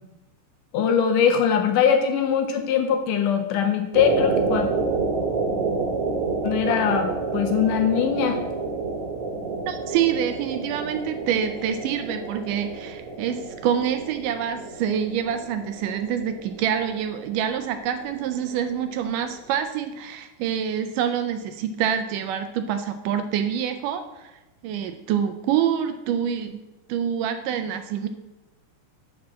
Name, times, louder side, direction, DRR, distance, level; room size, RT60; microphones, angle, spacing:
voice 1, 0.7-4.7 6.4-8.4, left 7 dB, 75° left, 5 dB, 2.0 m, -21 dB
sound 1, 3.9-19.2 19.5-19.6, right 4 dB, 65° right, 2.3 m, -29 dB
voice 2, 9.7-24.3 24.6-26.6 26.9-28.1, right 9 dB, 80° right, 8 dB, 2.0 m, -26 dB
8.8 x 4.3 x 7.3 m, 1.1 s
omnidirectional pair, 4.1 m